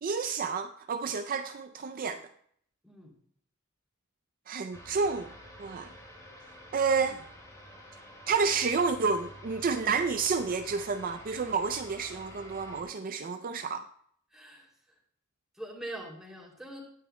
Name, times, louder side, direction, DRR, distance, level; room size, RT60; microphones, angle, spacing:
voice 1, 0.0-2.2 4.5-5.3 5.6-5.9 6.7-7.2 8.3-13.8, right 5 dB, 45° right, 8 dB, 0.4 m, -30 dB
sound 1, 4.7-12.8, equal, 15° left, 2.3 m, -49 dB
voice 2, 14.3-14.7 15.6-16.8, right 1 dB, ahead, -2 dB, 2.8 m, -43 dB
19.5 x 9.2 x 2.2 m, 0.65 s
head